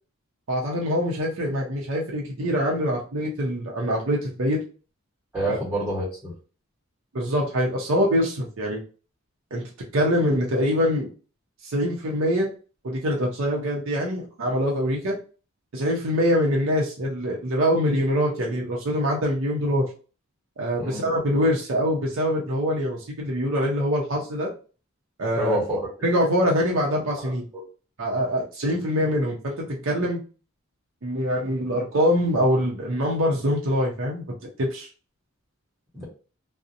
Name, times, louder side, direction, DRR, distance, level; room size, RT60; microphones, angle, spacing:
voice 1, 0.5-4.6 5.4-5.6 7.1-8.8 9.5-9.6 9.9-11.1 11.6-12.5 12.8-15.2 15.7-19.9 20.6-24.5 25.2-25.6 26.0-27.5 28.0-30.2 31.0-34.2 34.6-34.9, equal, 65° right, -2 dB, 0.5 m, -24 dB
voice 2, 5.3-6.3 20.8-21.0 25.3-25.9 27.5-27.6 35.9-36.1, right 1 dB, 10° right, -9 dB, 1.1 m, -27 dB
2.5 x 2.0 x 2.6 m, 0.36 s
head